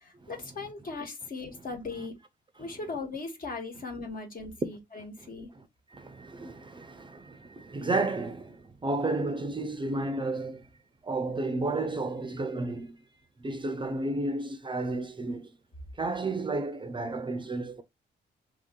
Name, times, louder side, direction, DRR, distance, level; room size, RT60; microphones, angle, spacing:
voice 1, 0.0-2.1 2.6-5.5, left 3 dB, 50° left, 1.4 m, -38 dB
voice 2, 5.0-5.7 5.9-10.7 11.0-13.0 13.4-15.5 16.0-17.8, right 2 dB, 25° right, 0.5 m, -32 dB
3.0 x 2.7 x 3.7 m
cardioid pair, 95°, 19 cm